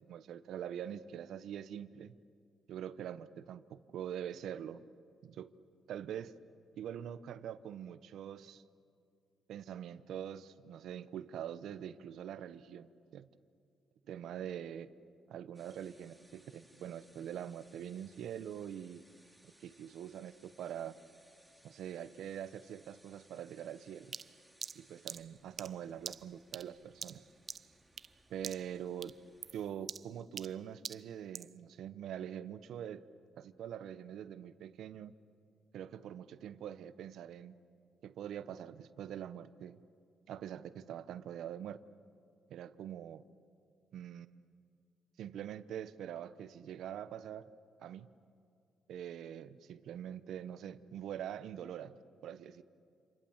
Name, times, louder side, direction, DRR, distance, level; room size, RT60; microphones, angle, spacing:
voice 1, 0.1-2.1 2.7-4.8 5.2-5.5 5.9-6.3 6.8-8.6 9.5-13.3 14.1-14.9 15.3-19.0 19.4-21.0 21.6-24.1 24.7-27.2 28.3-29.2 29.5-33.0 33.4-35.1 35.7-37.6 38.0-39.8 40.3-41.8 42.5-43.2 43.9-44.3 45.2-47.5 47.8-48.1 48.9-51.9 52.2-52.6, right 9 dB, 75° right, 14 dB, 0.9 m, -44 dB
sound 1, 15.5-29.7, right 1 dB, ahead, 2.8 m, -66 dB
sound 2, 24.1-28.2 28.4-28.8 29.0-31.6, right 7 dB, 50° right, 0.6 m, -46 dB
28.5 x 27.0 x 7.3 m, 2.4 s
cardioid pair, 90°, 0 cm